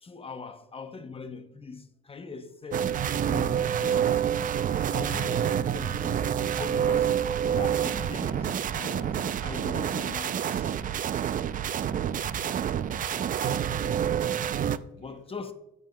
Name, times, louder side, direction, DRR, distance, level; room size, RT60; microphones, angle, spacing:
voice 1, 0.0-2.9 3.3-4.6 4.9-6.3 6.5-7.2 7.6-10.8 15.0-15.5, left 4 dB, 30° left, 0.7 m, -41 dB
sound 1, 2.7-14.8, right 9 dB, 45° right, 0.4 m, -28 dB
voice 2, 13.3-14.4 14.7-15.2, right 3 dB, 75° right, 3.2 m, -55 dB
15.0 x 5.5 x 2.2 m
cardioid pair, 90°, 20 cm